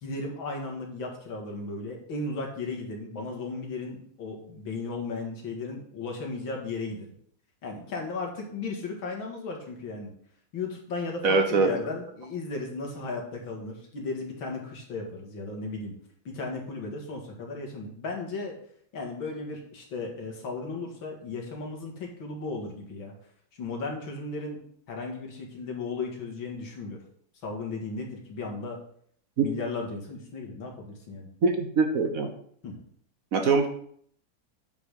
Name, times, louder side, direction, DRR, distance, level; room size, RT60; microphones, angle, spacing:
voice 1, 0.0-7.1 7.6-10.1 10.5-15.9 16.2-18.6 18.9-23.1 23.6-24.6 24.9-27.0 27.4-28.8 29.4-31.3 32.6-32.8, left 3 dB, 85° left, 1 dB, 2.9 m, -35 dB
voice 2, 11.2-11.7 29.4-29.5 31.4-32.3 33.3-33.7, right 4 dB, 50° right, 6 dB, 1.3 m, -23 dB
8.7 x 5.7 x 6.5 m, 0.62 s
omnidirectional pair, 2.1 m